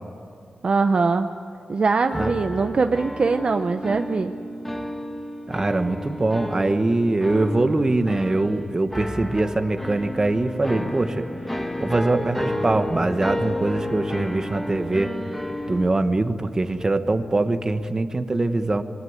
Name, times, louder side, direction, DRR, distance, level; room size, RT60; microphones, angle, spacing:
voice 1, 0.6-1.3 1.7-4.3, right 4 dB, 45° right, 7 dB, 0.7 m, -22 dB
sound 1, 2.1-15.8, left 1 dB, 5° left, 1.5 m, -31 dB
voice 2, 5.5-11.3 11.8-15.1 15.7-18.8, right 2 dB, 25° right, 9 dB, 1.3 m, -23 dB
25.5 x 23.0 x 9.7 m, 2.3 s
wide cardioid pair, 140°, 3 cm